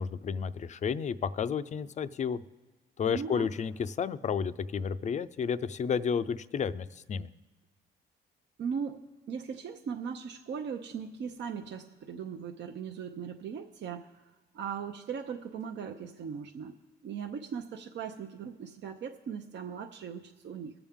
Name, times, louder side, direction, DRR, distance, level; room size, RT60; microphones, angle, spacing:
voice 1, 0.0-2.4 3.0-7.3, left 6 dB, 35° left, 14 dB, 0.4 m, -31 dB
voice 2, 3.0-3.5 8.6-9.0 9.3-14.1 14.5-16.8 17.0-20.7, right 7 dB, 65° right, 4 dB, 0.7 m, -38 dB
21.0 x 7.1 x 3.6 m, 1.3 s
cardioid pair, 90°, 20 cm